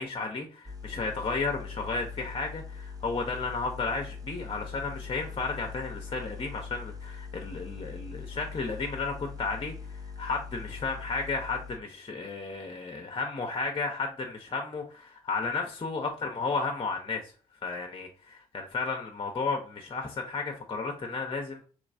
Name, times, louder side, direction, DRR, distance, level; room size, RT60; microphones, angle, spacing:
voice 1, 0.0-17.3 17.6-21.6, left 4 dB, 30° left, 2 dB, 0.7 m, -33 dB
sound 1, 0.7-11.8, left 5 dB, 20° right, 0.6 m, -42 dB
3.1 x 3.1 x 2.5 m, 0.40 s
hypercardioid pair, 40°, 19 cm